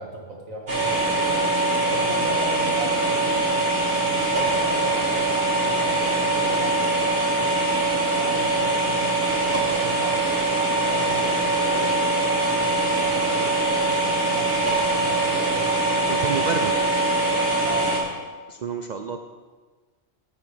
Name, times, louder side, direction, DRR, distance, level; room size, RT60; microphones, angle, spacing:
voice 1, 0.0-1.4 1.9-3.4 4.0-7.2 8.2-10.3 10.8-12.0 12.6-15.7 17.6-18.0, right 2 dB, 80° right, -1 dB, 1.8 m, -36 dB
sound 1, 0.7-18.0, right 2 dB, 45° right, 2.2 m, -22 dB
voice 2, 16.1-16.7 18.5-19.2, right 5 dB, 65° right, 6 dB, 0.4 m, -29 dB
9.7 x 7.6 x 5.1 m, 1.4 s
omnidirectional pair, 1.4 m